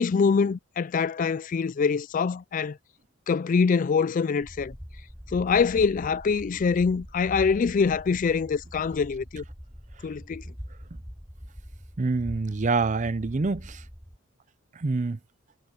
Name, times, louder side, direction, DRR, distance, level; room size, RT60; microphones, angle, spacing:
voice 1, 0.0-2.8 3.3-4.7 5.3-9.4 10.0-10.4, left 5 dB, 40° left, 0.3 m, -24 dB
sound 1, 4.4-14.2, equal, 10° right, 5.7 m, -43 dB
voice 2, 12.0-13.8 14.7-15.2, right 3 dB, 35° right, 0.5 m, -26 dB
head